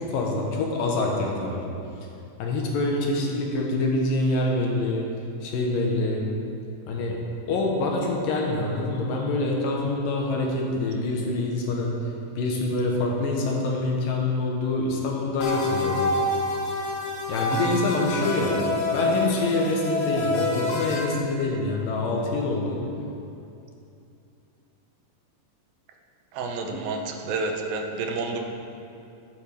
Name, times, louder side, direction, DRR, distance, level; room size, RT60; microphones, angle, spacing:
voice 1, 0.0-1.6 2.4-5.1 5.4-6.2 6.9-7.2 7.5-12.0 12.4-16.0 17.3-18.6 18.9-22.8 26.7-26.8, left 2 dB, 70° left, -1 dB, 2.7 m, -26 dB
sound 1, 15.4-21.0, left 2 dB, 85° left, 3.2 m, -27 dB
voice 2, 26.3-28.4, right 3 dB, 75° right, 3 dB, 2.6 m, -29 dB
13.5 x 10.0 x 3.5 m, 2.7 s
omnidirectional pair, 4.3 m